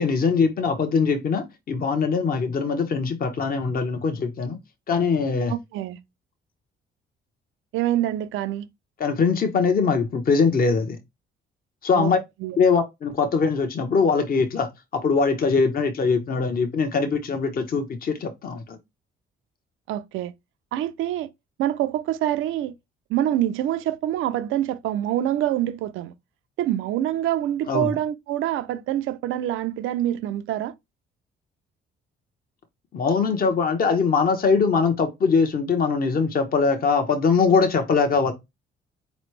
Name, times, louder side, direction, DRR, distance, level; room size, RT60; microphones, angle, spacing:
voice 1, 0.0-4.6 4.9-5.5 9.0-11.0 11.8-12.2 12.6-18.8 27.7-27.9 32.9-38.3, left 5 dB, 45° left, 0.9 m, -22 dB
voice 2, 5.5-6.0 7.7-8.7 11.9-12.1 12.4-12.6 19.9-20.3 20.7-21.3 21.6-22.7 23.1-26.1 26.6-30.7, right 12 dB, 85° right, 0.5 m, -25 dB
4.3 x 3.1 x 3.1 m
cardioid pair, 90°, 20 cm